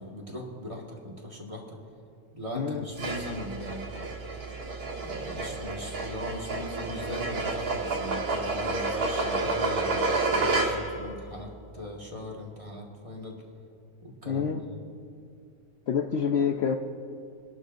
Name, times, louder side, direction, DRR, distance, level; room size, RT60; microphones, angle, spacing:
voice 1, 0.0-1.8 2.3-4.1 5.0-13.4 14.0-14.5, left 1 dB, 20° right, -2 dB, 1.7 m, -39 dB
voice 2, 2.5-2.9 14.3-14.6 15.9-16.8, left 7 dB, 65° left, 6 dB, 0.7 m, -27 dB
sound 1, 2.9-11.0, right 3 dB, 75° right, 2.1 m, -30 dB
24.0 x 11.5 x 2.6 m, 2.4 s
omnidirectional pair, 1.6 m